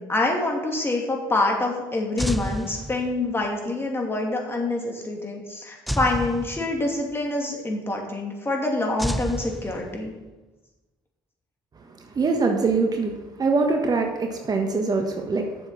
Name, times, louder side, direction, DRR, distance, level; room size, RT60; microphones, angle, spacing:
voice 1, 0.0-10.1, left 2 dB, 20° left, 0 dB, 2.6 m, -26 dB
sound 1, 2.2-3.4 5.9-7.1 9.0-10.3, equal, ahead, 0.4 m, -30 dB
voice 2, 12.0-15.5, right 4 dB, 35° right, 3 dB, 1.4 m, -23 dB
7.6 x 7.2 x 6.8 m, 1.1 s
hypercardioid pair, 60°, 12 cm